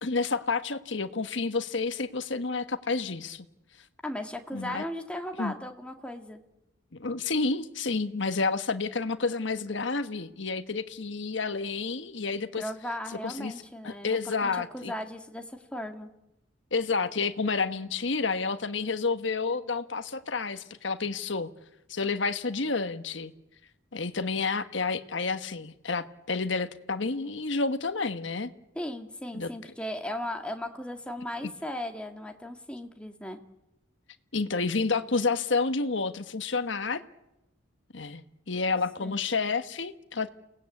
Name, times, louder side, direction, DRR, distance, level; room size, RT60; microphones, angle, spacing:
voice 1, 0.0-3.4 4.5-4.8 5.4-5.5 7.0-12.6 13.2-13.5 13.8-14.9 16.7-21.5 21.9-23.3 23.9-28.5 29.3-29.5 34.3-37.0 37.9-40.3, left 4 dB, 70° left, 1.3 m, -30 dB
voice 2, 4.0-6.4 12.6-16.1 28.8-33.4 39.0-39.2, left 1 dB, 5° left, 2.0 m, -37 dB
29.5 x 18.5 x 8.4 m
head